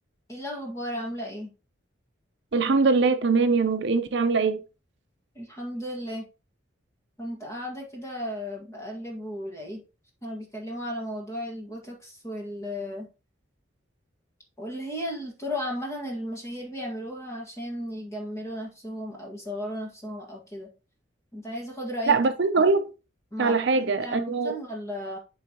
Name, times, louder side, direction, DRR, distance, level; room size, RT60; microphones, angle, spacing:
voice 1, 0.3-1.5 5.4-6.3 7.2-9.8 10.2-13.1 14.6-20.7 21.3-22.2 23.3-25.2, equal, 15° left, 1.8 m, -35 dB
voice 2, 2.5-4.6 22.1-22.9 23.4-24.5, right 4 dB, 60° right, 0.5 m, -22 dB
11.0 x 3.8 x 2.9 m
head